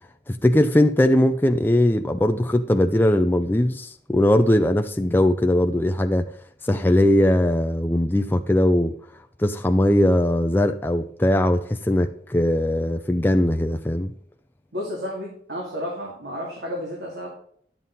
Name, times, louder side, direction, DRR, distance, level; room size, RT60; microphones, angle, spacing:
voice 1, 0.3-6.3 6.6-8.9 9.4-14.1, left 1 dB, 10° left, 0.4 m, -20 dB
voice 2, 14.7-17.3, equal, 75° right, 2.5 m, -32 dB
11.0 x 7.4 x 4.1 m
head